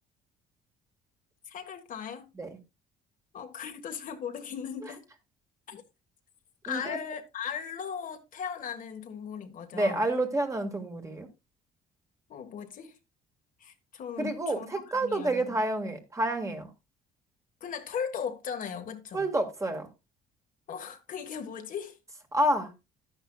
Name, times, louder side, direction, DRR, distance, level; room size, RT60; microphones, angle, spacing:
voice 1, 1.5-2.3 3.3-5.0 5.7-5.8 6.6-10.1 12.3-12.9 13.6-15.6 17.6-19.3 20.7-22.0, left 7 dB, 50° left, 1.5 m, -38 dB
voice 2, 6.7-7.0 9.7-11.3 14.2-16.7 19.1-19.9 22.3-22.7, right 1 dB, 20° right, 1.9 m, -29 dB
11.5 x 10.0 x 2.3 m
cardioid pair, 110°, 17 cm